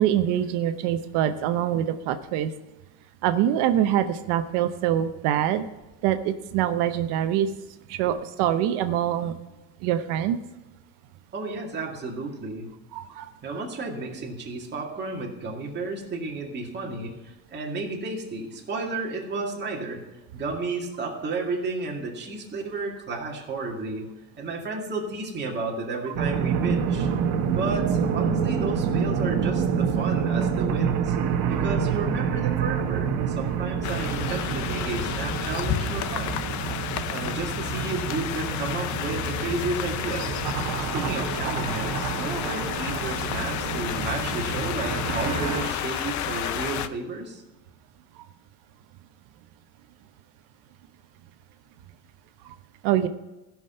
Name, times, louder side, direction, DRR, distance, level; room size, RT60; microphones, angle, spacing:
voice 1, 0.0-2.5 3.2-5.7 6.0-7.5 7.9-9.4 9.8-10.4 12.9-13.3 31.5-31.6 42.3-42.4 52.8-53.1, right 11 dB, 70° right, 9 dB, 0.9 m, -24 dB
voice 2, 11.3-12.7 13.4-20.0 20.3-24.0 24.4-27.1 27.5-31.2 31.5-36.5 37.1-40.4 40.9-47.4, right 3 dB, 25° right, -2 dB, 2.1 m, -32 dB
sound 1, 26.2-45.7, right 7 dB, 50° right, 1.2 m, -28 dB
sound 2, 33.8-46.9, left 10 dB, 45° left, 0.6 m, -31 dB
15.5 x 6.1 x 5.6 m, 1.1 s
cardioid pair, 150°, 42 cm